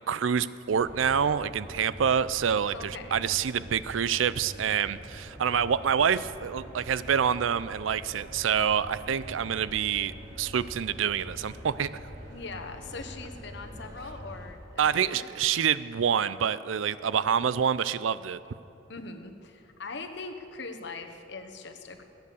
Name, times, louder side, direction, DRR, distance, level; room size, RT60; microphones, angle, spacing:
voice 1, 0.1-11.9 14.8-18.4, right 7 dB, 85° right, 16 dB, 0.4 m, -27 dB
sound 1, 0.7-14.5, equal, 60° right, 3.2 m, -44 dB
voice 2, 2.7-3.2 12.3-15.3 18.9-22.0, left 3 dB, 65° left, 5 dB, 1.2 m, -41 dB
18.0 x 9.4 x 6.9 m, 2.9 s
head